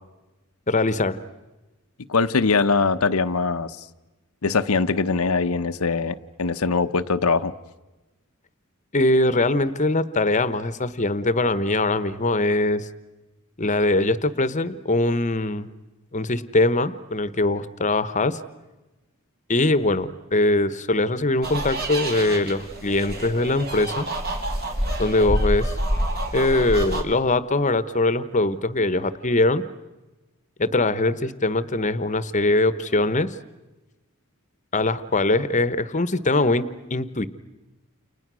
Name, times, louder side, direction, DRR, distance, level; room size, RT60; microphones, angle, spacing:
voice 1, 0.7-1.2 8.9-12.9 13.6-15.7 16.1-18.4 19.5-24.1 25.0-25.7 26.3-29.6 30.6-33.3 34.7-37.3, left 2 dB, 35° left, 14 dB, 1.1 m, -22 dB
voice 2, 2.1-3.8 4.4-7.5, left 4 dB, 80° left, 10 dB, 0.8 m, -22 dB
sound 1, 21.4-27.0, right 1 dB, 45° right, 3.9 m, -27 dB
29.5 x 29.0 x 6.3 m, 1.1 s
head